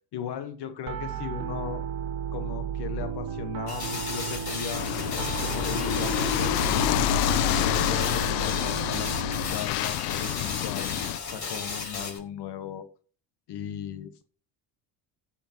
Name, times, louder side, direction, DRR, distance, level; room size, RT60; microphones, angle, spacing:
voice 1, 0.1-1.8 2.3-7.1 7.5-12.9 13.5-14.2, left 8 dB, 55° left, 1.5 m, -37 dB
Piano, 0.9-9.5, right 8 dB, 65° right, 1.5 m, -34 dB
sound 1, 3.7-12.2, left 4 dB, 35° left, 4.6 m, -35 dB
sound 2, 4.7-11.2, left 14 dB, 80° left, 0.8 m, -28 dB
15.0 x 6.8 x 3.1 m
supercardioid pair, 75°, 48 cm